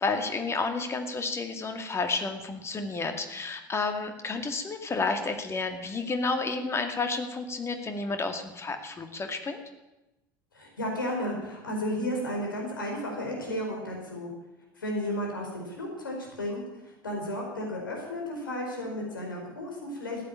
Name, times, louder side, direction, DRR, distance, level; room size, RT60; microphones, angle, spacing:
voice 1, 0.0-9.6, left 3 dB, 25° left, 6 dB, 2.2 m, -31 dB
voice 2, 10.5-14.3 14.8-20.2, left 1 dB, 75° left, 0 dB, 4.6 m, -33 dB
14.5 x 9.3 x 8.7 m, 0.98 s
figure-of-eight pair, 70°, 11 cm